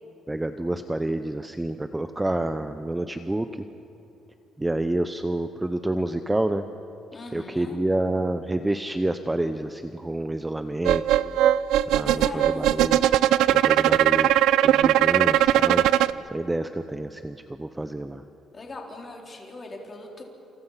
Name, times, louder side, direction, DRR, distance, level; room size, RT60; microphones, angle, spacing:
voice 1, 0.3-3.7 4.6-6.6 7.3-11.2 11.9-13.0 13.5-14.3 14.6-15.9 16.3-18.2, right 1 dB, 10° right, 9 dB, 0.7 m, -28 dB
voice 2, 7.1-7.8 12.0-12.7 18.5-20.2, left 2 dB, 25° left, 0 dB, 4.0 m, -39 dB
sound 1, 10.8-16.1, right 12 dB, 85° right, 0.6 m, -19 dB
29.5 x 28.0 x 5.8 m, 3.0 s
cardioid pair, 160°, 0 cm